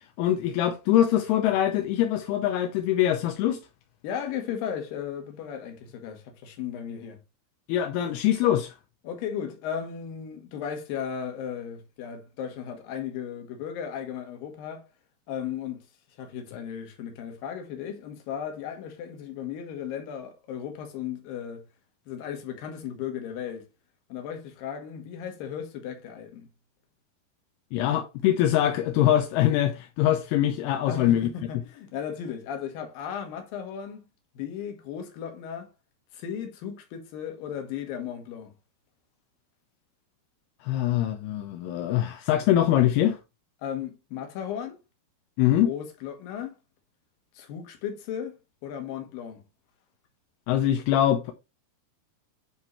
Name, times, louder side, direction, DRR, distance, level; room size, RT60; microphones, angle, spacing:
voice 1, 0.2-3.6 7.7-8.8 27.7-31.3 40.6-43.2 45.4-45.7 50.5-51.3, left 12 dB, 80° left, 2.6 m, -23 dB
voice 2, 4.0-7.2 9.0-14.9 15.3-15.8 16.2-21.6 22.1-23.7 24.1-26.5 30.9-34.1 34.3-35.7 36.1-38.5 43.6-44.8 45.6-46.6 47.3-49.4, left 8 dB, 65° left, 2.9 m, -35 dB
9.9 x 3.7 x 3.1 m
omnidirectional pair, 4.6 m